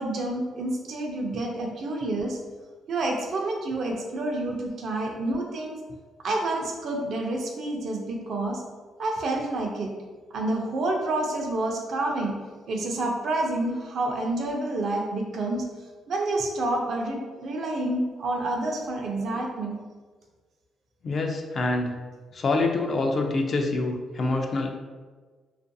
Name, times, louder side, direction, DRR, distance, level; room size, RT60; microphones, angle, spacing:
voice 1, 0.0-2.4 2.9-5.8 6.2-8.6 9.0-9.9 10.3-12.4 12.7-15.7 16.1-19.8, right 2 dB, 65° right, 1 dB, 0.5 m, -28 dB
voice 2, 21.0-21.9 22.3-24.7, left 2 dB, 45° left, 2 dB, 0.3 m, -26 dB
2.4 x 2.2 x 2.6 m, 1.4 s
cardioid pair, 90°, 0 cm